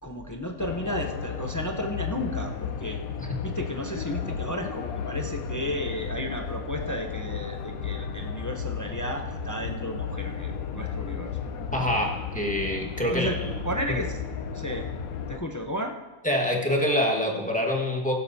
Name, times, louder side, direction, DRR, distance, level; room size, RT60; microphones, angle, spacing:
voice 1, 0.0-3.0 3.4-11.3 13.0-13.4 13.6-14.2 14.5-14.9 15.3-16.0, equal, 25° left, 3 dB, 0.4 m, -33 dB
sound 1, 0.6-15.4, left 6 dB, 85° left, 1.2 m, -34 dB
voice 2, 11.7-13.3 13.9-14.0 16.2-18.1, left 1 dB, 5° left, -1 dB, 1.4 m, -25 dB
16.0 x 11.5 x 2.7 m, 1.1 s
omnidirectional pair, 1.5 m